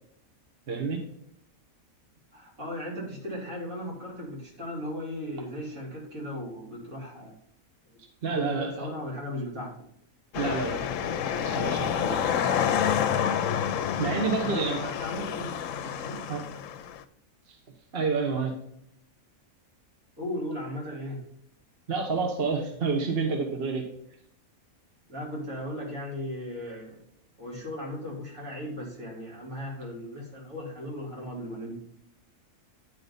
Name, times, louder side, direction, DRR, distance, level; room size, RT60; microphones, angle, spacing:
voice 1, 0.7-1.0 8.2-8.9 10.3-10.9 11.3-12.2 13.2-13.3 14.0-14.8 16.3-16.4 17.5-17.6 17.9-18.5 21.9-23.8, right 4 dB, 45° right, 2 dB, 1.2 m, -29 dB
voice 2, 2.3-7.4 8.3-9.7 14.4-15.6 16.0-16.3 20.2-21.2 25.1-27.0 27.4-31.8, left 1 dB, 70° right, -5 dB, 3.7 m, -36 dB
sound 1, 10.3-17.0, left 8 dB, 70° left, 0.9 m, -28 dB
10.0 x 3.8 x 5.3 m, 0.72 s
omnidirectional pair, 1.5 m